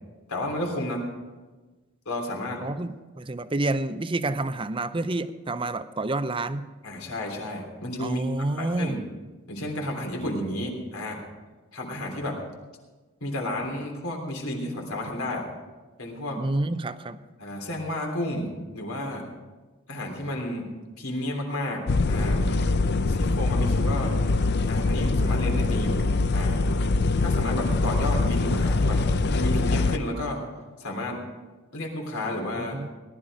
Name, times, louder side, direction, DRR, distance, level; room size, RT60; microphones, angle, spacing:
voice 1, 0.3-1.0 2.1-2.6 6.8-9.0 9.5-11.2 11.7-12.4 13.2-15.5 16.0-16.4 17.4-19.3 19.9-20.7 21.0-22.4 23.1-24.1 24.7-26.1 26.3-26.6 27.2-29.0 29.3-30.4 30.8-31.2 31.7-32.8, left 1 dB, 80° left, 1 dB, 3.3 m, -32 dB
voice 2, 2.6-6.7 8.0-9.0 16.4-17.2 32.6-32.9, right 2 dB, 25° right, 12 dB, 0.5 m, -29 dB
sound 1, 21.9-30.0, left 3 dB, 50° left, 0.5 m, -23 dB
18.5 x 11.5 x 4.9 m, 1.3 s
head